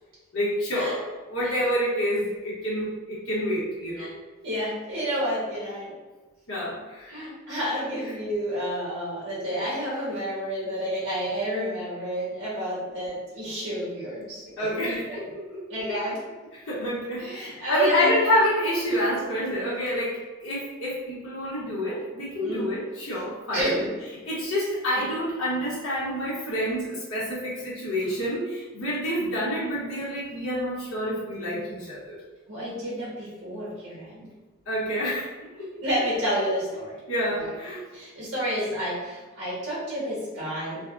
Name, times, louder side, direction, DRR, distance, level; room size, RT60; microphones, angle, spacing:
voice 1, 0.3-4.1 6.5-7.1 14.6-15.2 16.5-23.8 24.3-32.2 34.7-35.3 35.6-35.7 37.1-37.8, equal, 70° left, -7 dB, 0.8 m, -28 dB
voice 2, 4.4-5.9 7.1-15.2 15.7-16.2 17.2-18.2 18.9-19.0 22.4-22.7 23.5-23.9 24.9-25.0 32.5-34.3 35.8-36.9 37.4-37.5 37.9-40.8, equal, 80° right, -8 dB, 0.9 m, -30 dB
3.2 x 2.0 x 2.3 m, 1.2 s
head